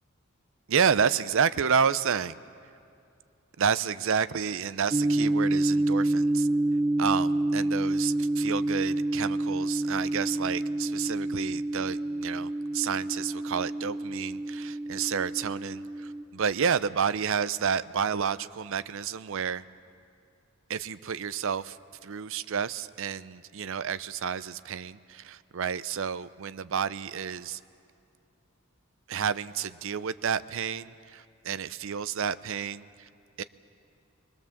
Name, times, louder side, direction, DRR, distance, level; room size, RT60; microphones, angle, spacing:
voice 1, 0.7-2.4 3.6-6.5 7.0-19.6 20.7-21.8 22.0-27.6 29.1-33.1 33.4-33.5, right 7 dB, 70° right, 15 dB, 0.5 m, -30 dB
sound 1, 4.9-16.2, right 1 dB, 25° right, 0.5 m, -28 dB
22.5 x 22.0 x 7.2 m, 2.4 s
head